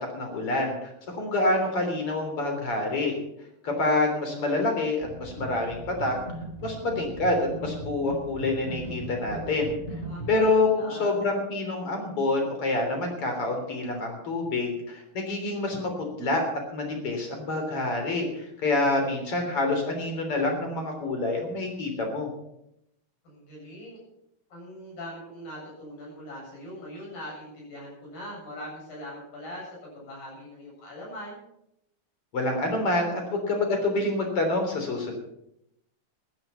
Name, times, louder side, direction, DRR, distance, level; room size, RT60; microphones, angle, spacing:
voice 1, 0.1-3.2 3.6-6.1 6.6-9.8 10.3-15.9 16.2-16.4 16.7-22.3 32.3-35.1, left 2 dB, 40° left, 3 dB, 4.2 m, -27 dB
sound 1, 5.0-10.5, right 2 dB, 10° left, 5.6 m, -39 dB
voice 2, 10.0-11.2 23.2-24.0 24.5-31.4, equal, 80° left, -3 dB, 9.4 m, -41 dB
15.0 x 12.0 x 5.8 m, 0.79 s
omnidirectional pair, 4.0 m